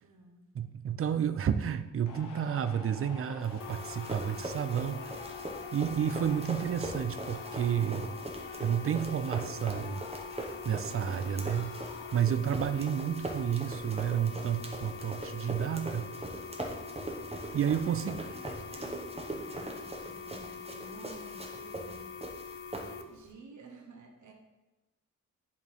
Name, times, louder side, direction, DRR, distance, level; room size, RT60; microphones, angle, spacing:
voice 1, 0.0-0.5 17.5-22.4 22.7-24.3, right 3 dB, 65° right, 1 dB, 1.0 m, -52 dB
voice 2, 0.5-5.1 5.7-8.1 8.6-10.0 10.6-11.8 12.1-16.1 17.5-18.2, right 8 dB, 45° right, 10 dB, 0.4 m, -31 dB
sound 1, 2.1-12.2, left 4 dB, 75° left, 0.9 m, -48 dB
Run, 3.4-23.3, right 2 dB, 20° right, 0.9 m, -42 dB
sound 2, 3.6-23.0, left 6 dB, 45° left, 0.5 m, -44 dB
10.5 x 4.3 x 3.6 m, 1.0 s
wide cardioid pair, 145°, 32 cm